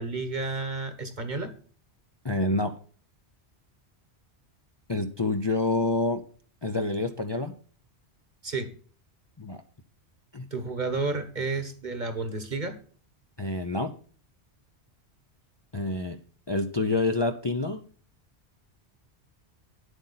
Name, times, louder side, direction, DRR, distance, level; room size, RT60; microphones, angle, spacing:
voice 1, 0.0-1.5 8.4-8.7 10.5-12.8, right 3 dB, 45° right, 9 dB, 1.4 m, -31 dB
voice 2, 2.2-2.7 4.9-6.2 6.6-7.5 9.4-9.6 10.3-10.5 13.4-13.9 15.7-16.2 16.5-17.8, left 2 dB, 30° left, 5 dB, 0.6 m, -27 dB
9.6 x 8.1 x 4.0 m, 0.43 s
omnidirectional pair, 1.1 m